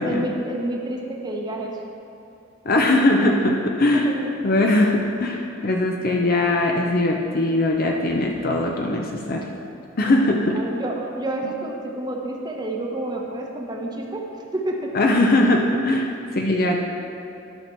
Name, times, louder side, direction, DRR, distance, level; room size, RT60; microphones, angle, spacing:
voice 1, 0.0-1.8 3.9-4.7 10.3-14.3 14.5-15.0, right 1 dB, 20° right, 0 dB, 0.9 m, -29 dB
voice 2, 2.6-4.1 4.4-9.5 10.0-10.6 14.9-16.8, left 2 dB, 50° left, 1 dB, 0.6 m, -20 dB
12.0 x 6.0 x 4.5 m, 2.6 s
head